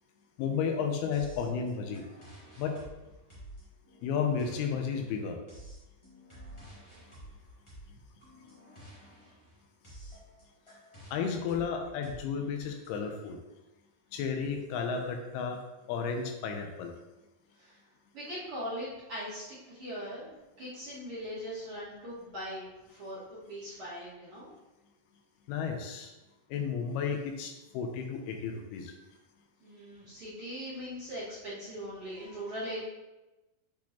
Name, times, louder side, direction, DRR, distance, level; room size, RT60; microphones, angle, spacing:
voice 1, 0.4-2.0 2.6-2.8 4.0-5.4 11.1-13.4 14.1-15.6 15.9-16.9 25.5-26.1 26.5-28.9, left 6 dB, 85° left, 4 dB, 2.6 m, -33 dB
sound 1, 1.1-12.9, right 1 dB, 55° left, 0.3 m, -51 dB
voice 2, 18.1-19.4 19.7-24.6 29.6-32.8, equal, 40° right, -11 dB, 2.4 m, -40 dB
8.3 x 4.3 x 2.9 m, 1.0 s
omnidirectional pair, 4.5 m